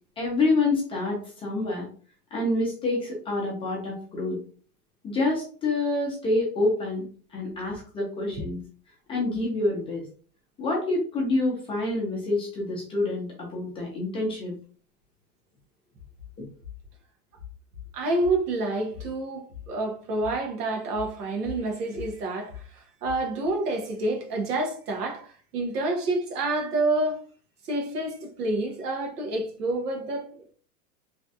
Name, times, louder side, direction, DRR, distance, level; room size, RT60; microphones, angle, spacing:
voice 1, 0.2-1.9 2.3-4.4 5.0-7.1 7.3-8.6 9.1-10.0 10.6-14.5 16.4-16.5, left 2 dB, 10° left, 0.5 m, -27 dB
voice 2, 17.9-27.2 27.6-30.5, right 2 dB, 85° right, 1.2 m, -28 dB
3.2 x 2.3 x 2.7 m
supercardioid pair, 145°, 45 cm